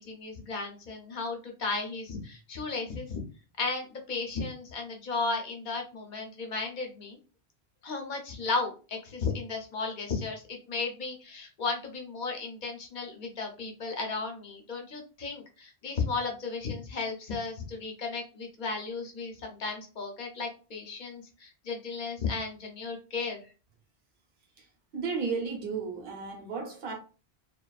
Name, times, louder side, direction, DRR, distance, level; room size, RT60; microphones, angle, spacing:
voice 1, 0.0-3.2 3.6-7.2 7.8-23.4, left 4 dB, 55° left, 0.7 m, -34 dB
voice 2, 24.9-26.9, right 5 dB, 65° right, 0.9 m, -33 dB
2.4 x 2.3 x 2.3 m
omnidirectional pair, 1.0 m